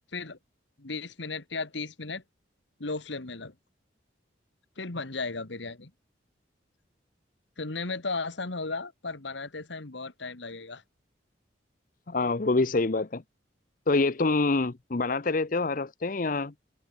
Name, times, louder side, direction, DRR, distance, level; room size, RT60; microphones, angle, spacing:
voice 1, 0.8-2.2 2.8-3.5 4.8-5.9 7.6-10.8, left 3 dB, 70° left, 1.8 m, -35 dB
voice 2, 12.1-13.2 13.9-16.5, left 3 dB, 45° left, 0.7 m, -26 dB
head